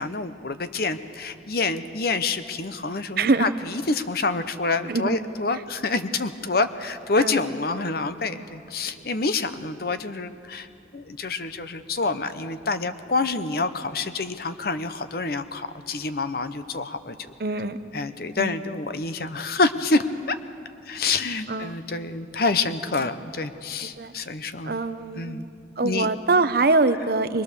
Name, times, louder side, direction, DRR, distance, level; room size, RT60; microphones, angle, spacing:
voice 1, 0.0-10.7 10.9-17.2 17.9-20.3 20.9-24.7 25.2-25.5 25.8-26.1, left 3 dB, 60° left, 11 dB, 0.9 m, -27 dB
voice 2, 3.2-3.5 4.9-5.1 5.5-5.6 7.2-7.4 7.8-7.9 8.4-8.5 9.0-9.1 17.4-17.8 18.4-18.6 21.5-21.7 23.8-24.1 24.6-25.4 25.8-27.4, right 3 dB, 60° right, 11 dB, 0.8 m, -24 dB
22.5 x 21.0 x 6.8 m, 2.5 s
head